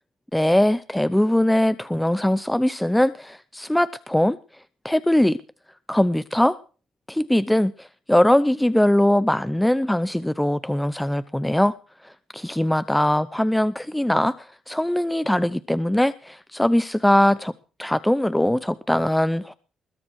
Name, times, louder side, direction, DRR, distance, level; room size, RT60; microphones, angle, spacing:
voice 1, 0.3-4.4 4.8-5.4 5.9-6.6 7.1-11.7 12.0-17.5 17.8-19.5, left 1 dB, 5° left, 0.7 m, -21 dB
21.0 x 7.3 x 6.3 m
cardioid pair, 90°, 0 cm